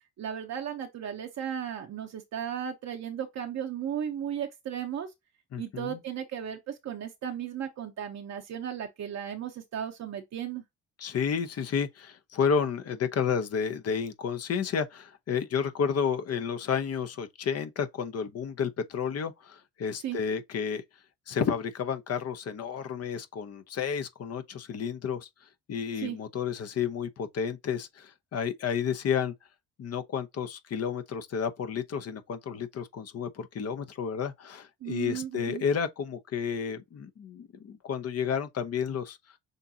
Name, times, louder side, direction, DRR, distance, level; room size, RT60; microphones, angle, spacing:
voice 1, 0.2-5.1 5.6-10.6 20.0-20.2 26.0-26.2 34.8-35.6, right 9 dB, 60° right, 0.9 m, -35 dB
voice 2, 5.5-6.0 11.0-20.8 21.3-25.3 25.7-29.3 29.8-39.2, left 7 dB, 55° left, 0.9 m, -31 dB
6.5 x 2.6 x 2.8 m
cardioid pair, 90°, 30 cm